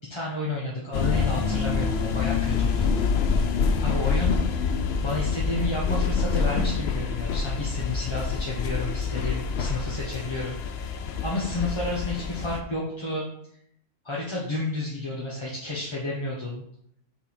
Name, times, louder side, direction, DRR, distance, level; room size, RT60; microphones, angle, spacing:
voice 1, 0.1-2.9 3.8-4.3 5.0-10.6 10.8-10.9 11.2-13.2 14.0-16.6, left 2 dB, 25° left, -5 dB, 1.1 m, -31 dB
sound 1, 0.9-12.6, left 5 dB, 75° left, 0.9 m, -26 dB
7.3 x 3.8 x 4.2 m, 0.72 s
omnidirectional pair, 1.1 m